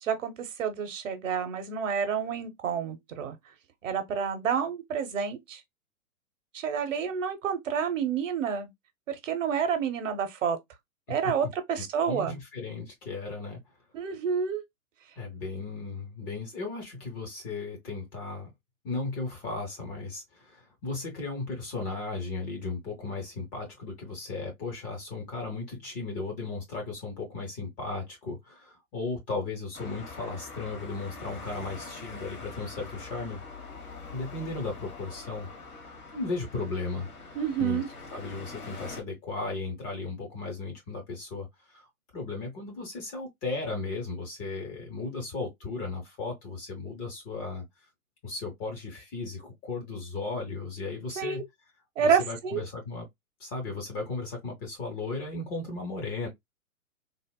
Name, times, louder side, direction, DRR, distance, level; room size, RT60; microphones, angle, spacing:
voice 1, 0.0-3.4 3.8-5.6 6.5-8.7 9.1-10.6 11.1-12.4 13.9-14.6 37.4-37.9 51.2-51.4 52.0-52.6, right 7 dB, 60° right, 0.9 m, -29 dB
voice 2, 11.8-13.6 15.2-18.5 18.8-33.4 34.1-35.5 36.1-37.1 37.6-37.8 38.1-41.9 42.1-47.6 48.2-51.4 52.0-53.1 53.4-56.3, left 3 dB, 20° left, 0.7 m, -36 dB
Traffic noise roadway noise, 29.7-39.0, left 3 dB, 75° left, 1.2 m, -44 dB
3.4 x 2.0 x 2.2 m
figure-of-eight pair, 120°, 44 cm